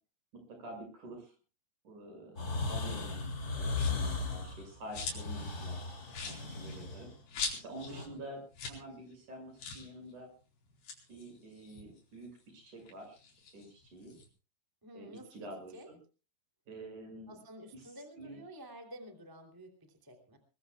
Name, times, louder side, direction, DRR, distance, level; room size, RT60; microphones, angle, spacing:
voice 1, 0.3-1.3 1.8-2.4 2.7-5.8 6.2-7.1 7.5-10.3 11.1-13.2 13.5-14.2 14.9-16.0 16.7-17.4 17.7-17.9 18.2-18.4, right 1 dB, 40° right, 5 dB, 7.6 m, -48 dB
sound 1, 2.4-8.1, left 3 dB, 25° left, 2.4 m, -37 dB
sound 2, 3.7-4.1 4.6-5.4 5.7-5.8 6.1-7.9 8.2-8.3 8.5-8.8 9.1-9.2 9.6-9.9 10.7-12.4 12.8-14.3, left 5 dB, 60° left, 6.1 m, -42 dB
voice 2, 7.9-8.2 14.8-15.5 15.7-15.9 17.3-20.4, right 1 dB, 5° right, 4 dB, 1.8 m, -51 dB
23.0 x 22.0 x 2.3 m, 0.35 s
omnidirectional pair, 5.4 m